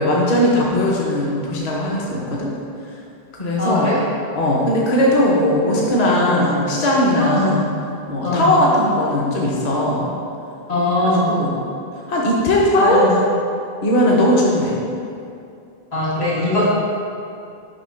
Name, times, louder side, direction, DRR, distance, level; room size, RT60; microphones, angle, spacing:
voice 1, 0.0-2.5 3.4-3.9 4.4-7.6 8.1-10.1 11.3-11.6 12.1-13.0 13.8-14.8, left 1 dB, 45° left, -3 dB, 0.9 m, -18 dB
voice 2, 3.6-4.0 6.2-6.5 7.2-7.5 8.2-8.6 10.7-11.3 12.7-13.1 15.9-16.7, left 1 dB, 85° left, -9 dB, 2.0 m, -20 dB
5.6 x 3.6 x 5.6 m, 2.5 s
omnidirectional pair, 1.0 m